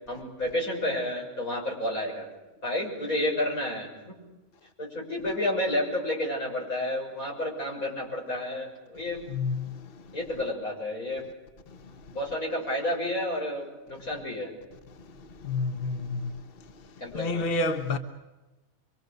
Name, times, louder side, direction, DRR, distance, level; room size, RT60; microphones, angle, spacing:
voice 1, 0.1-2.3 2.6-4.2 4.8-9.2 10.1-11.2 12.1-14.5 17.0-17.5, left 1 dB, 90° left, 6.8 m, -30 dB
voice 2, 9.3-9.8 15.4-16.3 17.1-18.0, left 3 dB, 45° left, 1.4 m, -29 dB
26.5 x 24.0 x 6.7 m
omnidirectional pair, 1.4 m